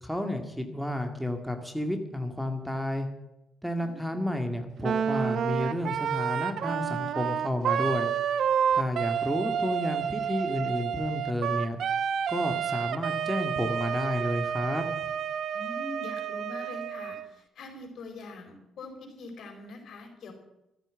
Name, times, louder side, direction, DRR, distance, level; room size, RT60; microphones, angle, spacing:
voice 1, 0.0-3.1 3.6-8.1 8.7-11.8 12.3-14.8, left 1 dB, ahead, 5 dB, 1.9 m, -31 dB
voice 2, 3.8-4.3 15.5-20.3, left 3 dB, 65° left, 4 dB, 4.4 m, -43 dB
Wind instrument woodwind instrument, 4.8-17.3, right 8 dB, 65° right, 0.8 m, -30 dB
13.5 x 9.0 x 9.2 m, 0.89 s
cardioid pair, 90°, 0 cm